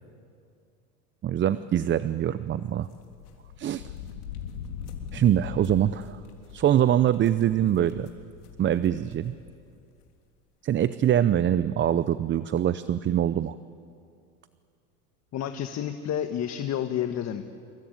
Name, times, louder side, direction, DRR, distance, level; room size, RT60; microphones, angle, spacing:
voice 1, 1.2-2.9 3.6-3.8 5.1-6.2 6.5-8.1 8.6-9.3 10.6-13.6, right 10 dB, 25° right, 14 dB, 0.6 m, -24 dB
sound 1, 2.9-9.6 10.0-10.1 11.2-11.3 11.5-11.8, left 8 dB, 90° left, 3.5 m, -42 dB
voice 2, 15.3-17.4, left 10 dB, 35° left, 7 dB, 1.4 m, -30 dB
27.0 x 22.5 x 9.3 m, 2.4 s
supercardioid pair, 105°, 44 cm